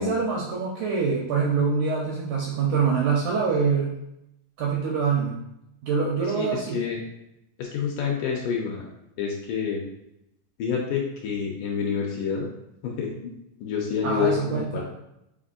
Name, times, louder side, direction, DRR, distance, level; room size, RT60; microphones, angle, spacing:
voice 1, 0.0-3.9 4.6-5.4 5.8-6.8 14.0-14.8, right 5 dB, 85° right, -2 dB, 1.7 m, -25 dB
voice 2, 6.2-7.0 7.6-8.8 9.2-9.8 10.6-12.5 12.8-13.3 13.6-14.8, left 6 dB, 80° left, 0 dB, 2.0 m, -28 dB
5.3 x 3.5 x 2.5 m, 0.85 s
omnidirectional pair, 4.1 m